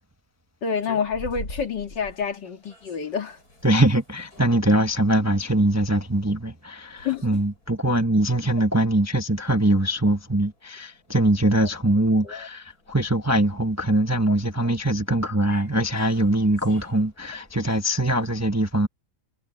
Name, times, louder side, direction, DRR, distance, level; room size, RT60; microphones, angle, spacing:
voice 1, 0.6-3.4 7.0-7.2 12.2-12.5 14.3-14.4, left 6 dB, 75° left, 2.6 m, -28 dB
sound 1, 0.7-18.4, left 2 dB, 55° left, 8.3 m, -48 dB
voice 2, 3.6-18.9, right 1 dB, 10° right, 0.9 m, -22 dB
omnidirectional pair, 1.9 m